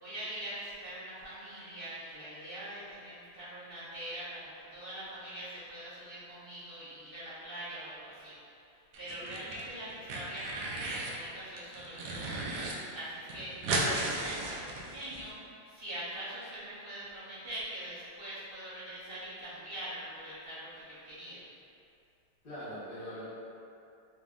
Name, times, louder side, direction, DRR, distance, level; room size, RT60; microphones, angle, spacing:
voice 1, 0.0-8.3 8.6-12.3 12.9-15.3 15.6-21.4, right 1 dB, 50° right, -12 dB, 0.6 m, -43 dB
sound 1, 8.9-9.6 9.9-11.2 11.6-12.7 13.0-13.1 13.3-15.2, right 2 dB, 80° right, 0.9 m, -34 dB
voice 2, 9.0-9.5 22.4-23.3, equal, 50° left, -11 dB, 0.6 m, -43 dB
5.1 x 2.0 x 3.5 m, 2.5 s
omnidirectional pair, 2.3 m